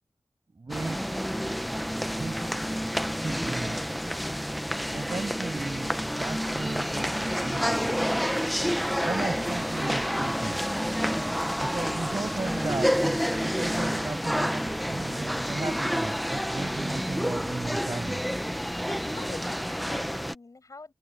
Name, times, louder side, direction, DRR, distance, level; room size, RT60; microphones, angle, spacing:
voice 1, 0.6-1.0 2.2-2.6 3.1-4.0 4.9-8.1 9.0-10.6 11.6-18.2, right 3 dB, 55° right, 6.9 m, -36 dB
sound 1, 0.7-20.3, equal, ahead, 0.7 m, -29 dB
voice 2, 18.6-20.9, left 3 dB, 55° left, 6.6 m, -45 dB
open air
wide cardioid pair, 85°, 7 cm